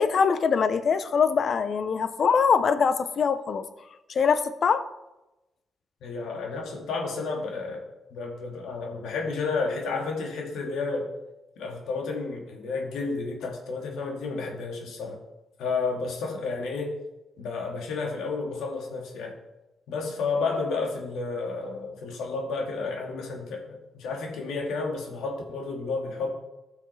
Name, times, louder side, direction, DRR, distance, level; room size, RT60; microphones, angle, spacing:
voice 1, 0.0-3.6 4.1-4.9, left 6 dB, 60° left, 0.7 m, -23 dB
voice 2, 6.0-7.8 8.1-11.1 11.6-15.2 15.6-16.9 17.4-19.3 19.9-26.3, left 4 dB, 90° left, 1.8 m, -31 dB
15.0 x 5.7 x 3.3 m
cardioid pair, 75°, 0 cm